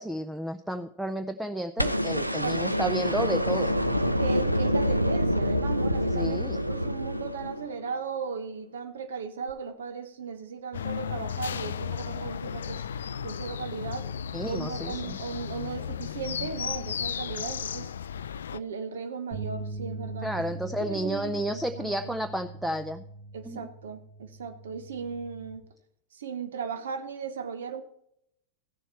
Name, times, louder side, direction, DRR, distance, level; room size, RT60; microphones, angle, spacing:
voice 1, 0.0-3.7 6.1-6.6 14.3-15.2 20.2-23.0 23.4-23.6, right 1 dB, 5° right, 8 dB, 0.5 m, -32 dB
sound 1, 1.8-8.0 9.5-9.6, equal, 90° right, 0.5 m, -26 dB
voice 2, 2.2-2.9 4.2-12.9 13.2-14.1 14.5-17.9 18.5-22.2 23.3-25.6 26.1-27.8, right 5 dB, 65° right, 9 dB, 1.1 m, -37 dB
sound 2, 10.7-18.6, left 8 dB, 65° left, 0.3 m, -34 dB
sound 3, 19.3-25.6, right 2 dB, 45° right, 3.8 m, -41 dB
15.5 x 7.0 x 4.4 m, 0.75 s
figure-of-eight pair, 90°, 0 cm